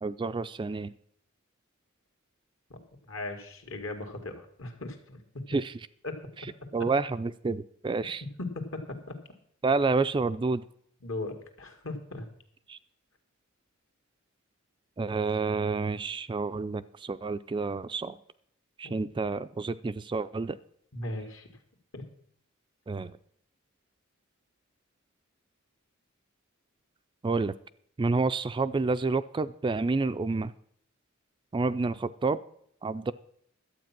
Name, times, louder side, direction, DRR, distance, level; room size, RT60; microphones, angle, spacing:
voice 1, 0.0-0.9 5.5-5.8 6.7-8.2 9.6-10.6 12.7-12.8 15.0-18.2 18.8-20.6 22.9-23.2 27.2-27.5 28.0-30.5 31.5-32.4 32.8-33.1, right 3 dB, 25° right, 12 dB, 0.3 m, -29 dB
voice 2, 3.1-5.2 6.0-6.2 6.6-6.7 8.4-9.2 11.0-12.3 18.8-18.9 20.9-21.5 21.9-22.0, left 2 dB, 65° left, 5 dB, 2.1 m, -38 dB
12.0 x 8.4 x 6.0 m, 0.67 s
head